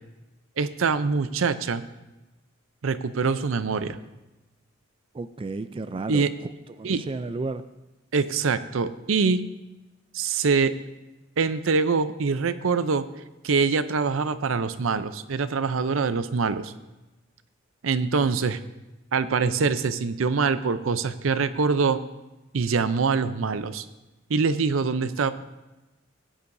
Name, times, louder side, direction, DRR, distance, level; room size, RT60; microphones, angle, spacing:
voice 1, 0.6-1.8 2.8-4.0 6.1-6.3 6.8-7.0 8.1-9.4 10.1-10.7 11.4-13.0 13.4-16.7 17.8-18.6 19.1-22.0 22.5-23.8 24.3-25.3, right 4 dB, 80° right, 12 dB, 0.6 m, -24 dB
voice 2, 5.1-6.5 6.8-7.6, right 3 dB, 25° right, 11 dB, 0.3 m, -32 dB
16.5 x 10.0 x 2.6 m, 1.0 s
head